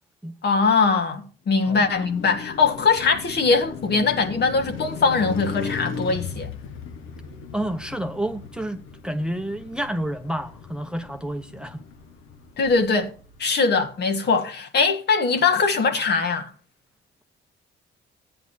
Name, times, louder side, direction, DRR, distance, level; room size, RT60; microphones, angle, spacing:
voice 1, 0.4-6.5 12.6-13.1 13.4-16.5, left 4 dB, 55° left, 1.7 m, -21 dB
Car passing by, 1.5-13.7, left 6 dB, 85° left, 1.2 m, -37 dB
voice 2, 7.5-11.8, right 1 dB, 5° right, 0.7 m, -30 dB
15.0 x 9.4 x 2.7 m
cardioid pair, 90°, 20 cm